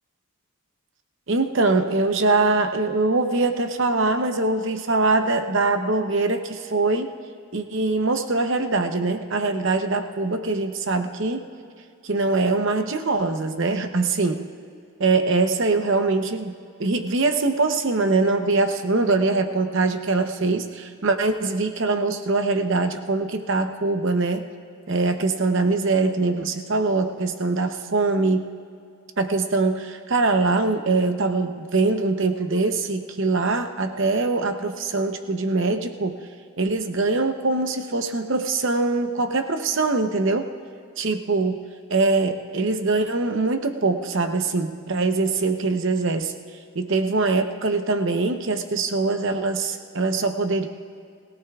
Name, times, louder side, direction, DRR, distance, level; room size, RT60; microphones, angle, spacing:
voice 1, 1.3-7.1 7.5-11.5 12.0-14.5 15.0-16.5 16.8-24.5 24.9-28.5 29.2-36.2 36.6-40.5 41.0-41.6 41.9-46.3 46.7-50.7, right 3 dB, 60° right, 7 dB, 0.8 m, -23 dB
22.0 x 17.0 x 2.4 m, 2.3 s
head